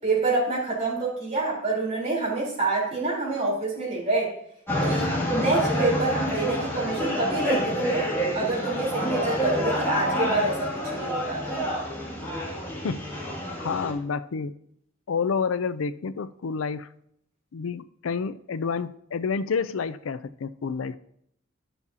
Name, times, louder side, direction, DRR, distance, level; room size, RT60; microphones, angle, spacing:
voice 1, 0.0-4.3 4.8-8.1 8.3-11.6, right 3 dB, 35° right, -4 dB, 3.8 m, -27 dB
sound 1, 4.7-13.9, equal, 10° left, 2.3 m, -28 dB
voice 2, 13.6-14.5 15.1-16.9 17.5-21.0, left 5 dB, 90° left, 14 dB, 0.5 m, -29 dB
11.0 x 7.0 x 2.8 m, 0.71 s
head